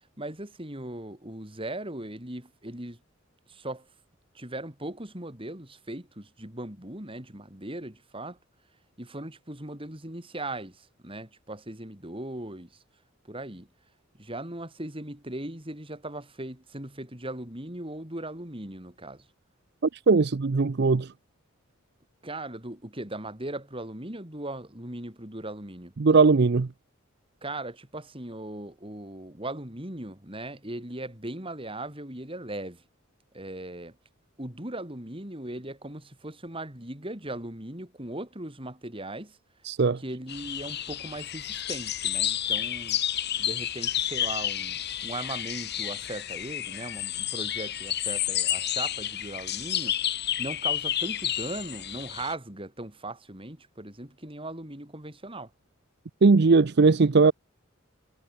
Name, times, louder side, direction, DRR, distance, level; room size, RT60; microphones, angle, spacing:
voice 1, 0.2-3.0 3.5-3.9 4.3-8.4 9.0-12.8 13.2-13.7 14.2-19.2 22.2-25.9 27.4-32.8 33.3-34.0 34.4-39.4 40.0-43.0 43.4-50.0 50.4-55.5, right 1 dB, 25° right, 4.5 m, -38 dB
voice 2, 19.8-21.1 26.0-26.7 39.6-40.0 56.2-57.3, right 4 dB, 55° right, 0.6 m, -19 dB
sound 1, 40.3-52.3, left 11 dB, 55° left, 3.9 m, -30 dB
head